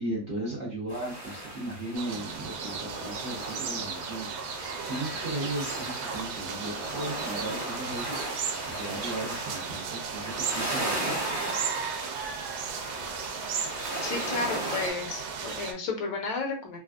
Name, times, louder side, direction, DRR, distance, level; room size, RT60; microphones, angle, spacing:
voice 1, 0.0-8.5 8.8-11.4, right 1 dB, 45° right, -6 dB, 0.9 m, -36 dB
sound 1, 0.9-14.9, right 1 dB, 15° right, 0.5 m, -36 dB
sound 2, 1.9-15.7, right 6 dB, 80° right, 1.3 m, -35 dB
voice 2, 14.0-16.8, left 4 dB, 75° left, 2 dB, 1.2 m, -32 dB
3.4 x 2.3 x 2.4 m, 0.34 s
omnidirectional pair, 2.2 m